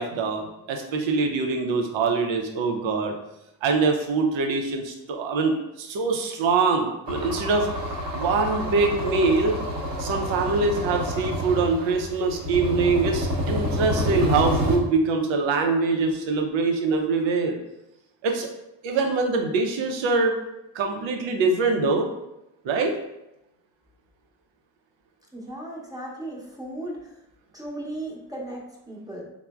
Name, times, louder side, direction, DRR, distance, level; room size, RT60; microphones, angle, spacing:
voice 1, 0.0-3.1 3.6-7.7 8.1-9.6 10.0-17.5 18.2-18.5 18.8-20.3 20.7-22.1 22.6-22.9, right 4 dB, 85° right, 3 dB, 0.5 m, -24 dB
sound 1, 7.1-14.8, equal, 50° right, 0.8 m, -28 dB
voice 2, 25.3-27.2 27.5-29.2, right 1 dB, 10° right, -3 dB, 0.7 m, -36 dB
3.2 x 2.0 x 2.3 m, 0.89 s
supercardioid pair, 45°, 44 cm